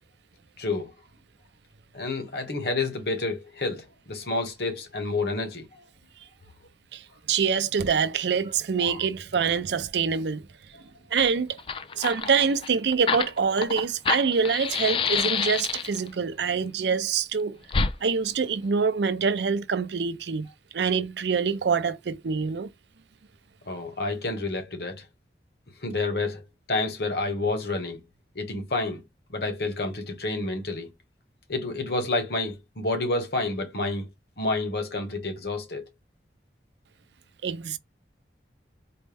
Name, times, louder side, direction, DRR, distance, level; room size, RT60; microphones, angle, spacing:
voice 1, 0.6-0.9 1.9-5.7 8.8-9.0 10.7-10.8 23.7-25.0 25.8-26.4 26.7-28.0 28.3-29.0 29.3-30.9 31.5-34.1 34.4-35.8, left 2 dB, 65° left, 1.1 m, -29 dB
voice 2, 6.9-10.4 11.1-11.6 12.0-17.6 18.0-20.5 20.7-22.7 37.4-37.8, right 6 dB, 80° right, 0.5 m, -25 dB
Fire, 11.2-11.3 11.5-16.1 17.7-17.9, left 5 dB, 30° left, 0.3 m, -27 dB
4.3 x 2.0 x 3.4 m
head